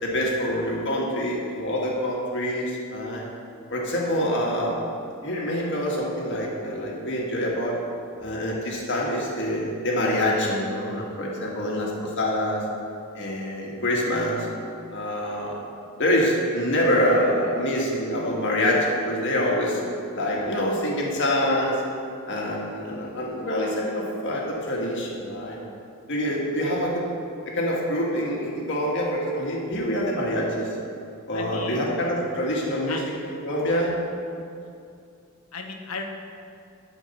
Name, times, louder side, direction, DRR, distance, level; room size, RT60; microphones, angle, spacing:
voice 1, 0.0-3.2 3.7-4.8 5.2-7.8 8.2-12.6 13.1-14.5 14.9-15.6 16.0-19.8 20.1-21.7 22.3-25.6 26.1-27.1 27.4-30.7 31.3-33.0 33.4-33.9, equal, 60° left, -3 dB, 1.7 m, -25 dB
voice 2, 31.3-31.8 32.9-33.0 34.5-34.7 35.5-36.1, left 4 dB, 80° left, 3 dB, 1.0 m, -35 dB
12.0 x 4.5 x 5.6 m, 2.5 s
head